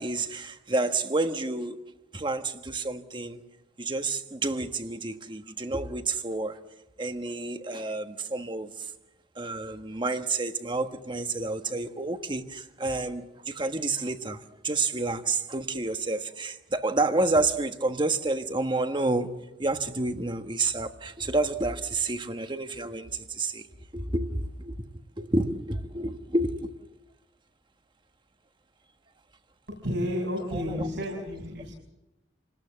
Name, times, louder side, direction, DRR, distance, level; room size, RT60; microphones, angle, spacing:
voice 1, 0.0-1.8 2.1-3.4 3.8-6.6 7.0-8.9 9.3-23.6 23.9-24.9 25.2-26.8 30.5-30.9, right 2 dB, 25° right, 1.4 m, -29 dB
voice 2, 29.8-31.7, equal, 85° right, 6.4 m, -31 dB
28.0 x 19.5 x 7.5 m
head